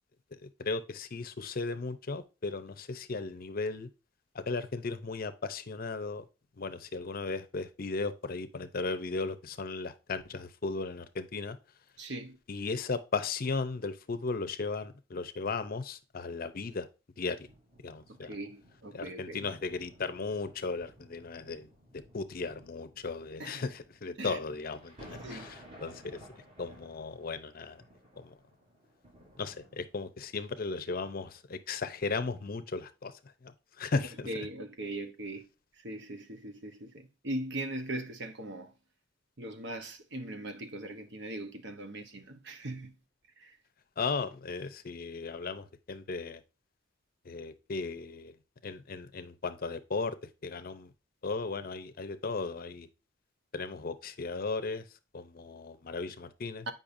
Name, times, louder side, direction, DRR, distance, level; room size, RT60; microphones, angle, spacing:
voice 1, 0.3-3.9 4.3-6.2 6.6-11.6 12.5-16.9 17.2-17.5 17.8-18.4 18.9-21.7 21.9-26.2 26.6-27.8 28.2-28.4 29.4-33.1 33.4-34.5 44.0-46.4 47.2-48.3 48.6-50.9 51.2-52.9 53.5-54.9 55.1-56.7, left 4 dB, 50° left, 0.6 m, -36 dB
voice 2, 12.0-12.4 18.1-19.5 23.4-23.6 24.2-24.4 25.2-25.5 34.3-35.5 35.8-38.7 39.4-42.9 43.4-43.6 56.7-56.8, right 1 dB, 65° right, 0.9 m, -40 dB
sound 1, 17.4-30.2 30.9-31.0, equal, 40° right, 4.2 m, -56 dB
8.5 x 5.4 x 2.6 m
head